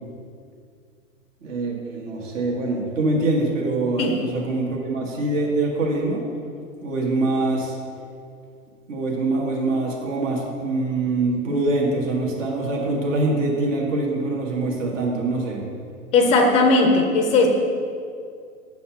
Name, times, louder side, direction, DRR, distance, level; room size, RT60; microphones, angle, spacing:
voice 1, 1.4-6.2 6.8-7.8 8.9-15.6, right 2 dB, 60° right, -2 dB, 1.6 m, -24 dB
voice 2, 16.1-17.5, left 3 dB, 15° left, 3 dB, 0.5 m, -17 dB
5.9 x 4.2 x 6.0 m, 2.3 s
hypercardioid pair, 115°, 44 cm